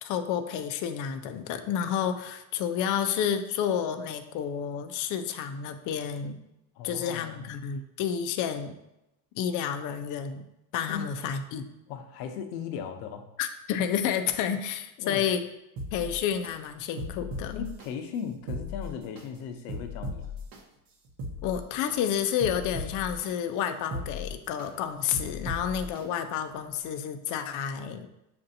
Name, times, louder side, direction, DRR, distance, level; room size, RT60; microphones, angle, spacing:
voice 1, 0.0-6.4 6.8-8.7 9.4-10.5 10.7-11.7 13.4-15.4 15.9-17.7 21.4-28.1, left 8 dB, 40° left, 7 dB, 0.4 m, -30 dB
voice 2, 6.8-7.5 10.9-11.1 11.9-13.2 15.0-15.2 17.5-20.3, left 7 dB, 80° left, 6 dB, 0.7 m, -37 dB
sound 1, 15.8-16.5 17.0-17.9 18.3-19.2 19.7-20.6 21.0-22.0 22.4-23.3 23.8-24.7 25.1-26.0 26.5-26.6, left 2 dB, 45° right, 0.8 m, -37 dB
6.6 x 2.6 x 2.6 m, 0.87 s
supercardioid pair, 110°, 49 cm